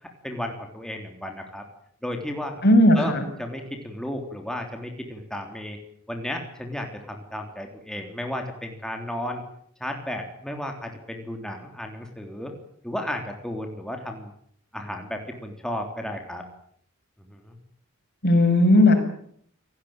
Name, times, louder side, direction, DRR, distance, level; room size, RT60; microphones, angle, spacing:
voice 1, 0.0-1.7 2.0-2.6 3.0-5.8 6.1-9.4 9.8-12.5 12.8-14.3 14.7-16.5 17.2-17.6, left 1 dB, 5° left, 3 dB, 3.5 m, -33 dB
voice 2, 2.6-3.2 18.2-19.0, left 1 dB, 50° left, 6 dB, 6.8 m, -16 dB
28.5 x 18.0 x 9.0 m, 0.67 s
head